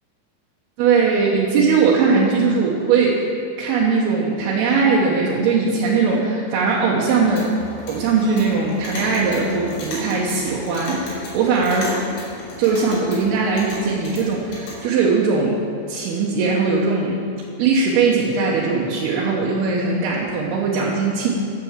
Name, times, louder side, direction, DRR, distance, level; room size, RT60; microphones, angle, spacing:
voice 1, 0.8-3.2 3.6-7.5 7.9-12.0 12.6-15.6 15.9-17.2 17.6-21.3, right 4 dB, 70° right, -5 dB, 2.7 m, -19 dB
Clock, 7.1-14.8, left 1 dB, 75° left, 5.2 m, -35 dB
12.5 x 6.9 x 7.2 m, 2.5 s
omnidirectional pair, 5.4 m